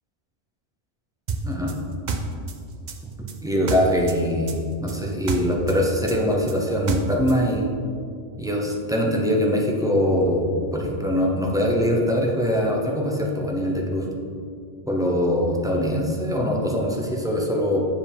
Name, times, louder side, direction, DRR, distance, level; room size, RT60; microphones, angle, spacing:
sound 1, 1.3-4.2 4.5-7.4, right 4 dB, 55° right, 0.5 m, -29 dB
voice 1, 3.4-7.7 8.4-14.1 14.9-17.8, equal, 5° right, -2 dB, 0.6 m, -23 dB
8.6 x 4.9 x 3.5 m, 2.3 s
omnidirectional pair, 1.3 m